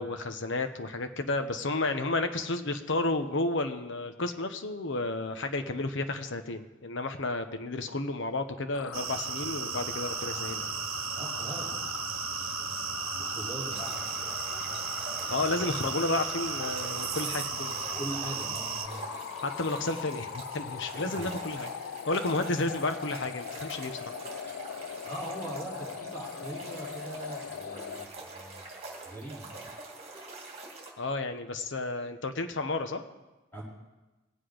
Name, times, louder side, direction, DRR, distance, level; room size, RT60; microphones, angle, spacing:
voice 1, 0.0-10.8 15.3-17.8 19.4-21.7 22.1-24.0 31.0-33.0, left 2 dB, 60° left, 7 dB, 0.9 m, -32 dB
sound 1, 8.7-28.1, left 9 dB, 85° left, 0.3 m, -40 dB
sound 2, 8.9-18.9, right 10 dB, 85° right, 0.7 m, -36 dB
voice 2, 11.2-11.8 12.2-14.0 17.9-19.0 20.9-21.3 24.8-28.7 29.0-29.6 33.5-33.6, right 1 dB, 10° left, -7 dB, 4.6 m, -41 dB
sound 3, 13.7-30.9, right 3 dB, 30° right, 2.2 m, -45 dB
20.5 x 8.0 x 5.0 m, 1.1 s
head